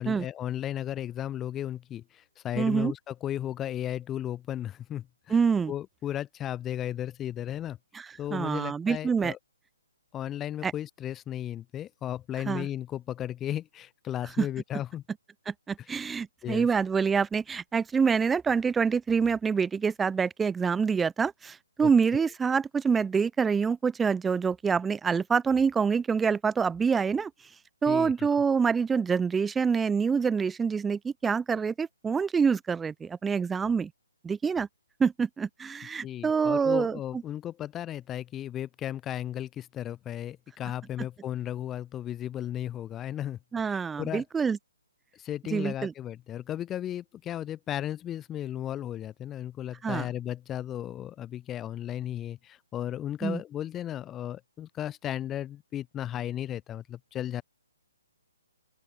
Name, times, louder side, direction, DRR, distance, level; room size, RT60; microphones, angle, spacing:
voice 1, 0.0-5.4 5.7-7.8 8.2-9.4 10.1-15.0 15.8-15.9 16.4-16.7 21.8-22.3 27.9-28.4 36.0-43.4 43.6-44.2 45.1-57.4, left 11 dB, 10° left, 5.6 m, -35 dB
voice 2, 2.6-2.9 5.3-5.7 7.9-9.3 10.6-10.7 12.5-12.7 14.4-14.5 15.5-27.3 27.8-33.9 34.2-34.7 35.0-37.0 43.5-44.6 45.5-45.9 49.8-50.1 53.2-53.4, right 5 dB, 5° right, 6.3 m, -26 dB
open air
hypercardioid pair, 170°, 0 cm